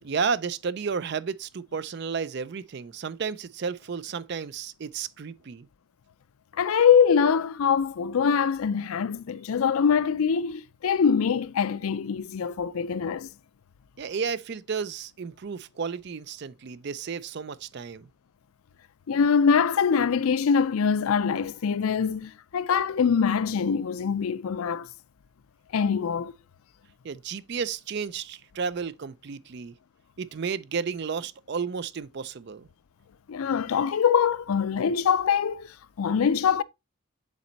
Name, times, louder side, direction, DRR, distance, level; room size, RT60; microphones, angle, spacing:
voice 1, 0.0-5.7 14.0-18.1 27.0-29.7 30.2-32.7, right 5 dB, 50° right, 0.4 m, -32 dB
voice 2, 6.6-13.3 19.1-24.9 25.7-26.3 33.3-36.6, left 6 dB, 75° left, 0.4 m, -23 dB
7.3 x 4.2 x 4.0 m
head